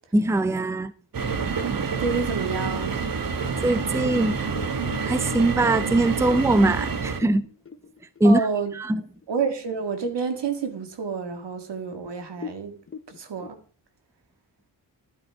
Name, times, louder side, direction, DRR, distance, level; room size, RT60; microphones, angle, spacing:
voice 1, 0.1-0.9 3.6-4.4 5.1-7.5 8.2-8.5 8.7-9.0, right 2 dB, 5° right, 0.5 m, -21 dB
sound 1, 1.1-7.2, right 5 dB, 55° right, 1.3 m, -28 dB
voice 2, 1.9-3.0 8.2-8.7 9.3-12.7 13.2-13.6, right 5 dB, 85° right, 1.9 m, -29 dB
sound 2, 3.3-8.9 9.2-9.3 9.7-10.2 10.7-10.8 11.4-11.5 11.8-11.9 12.3-13.5, left 5 dB, 30° left, 0.9 m, -42 dB
12.0 x 11.5 x 3.5 m
wide cardioid pair, 90°, 40 cm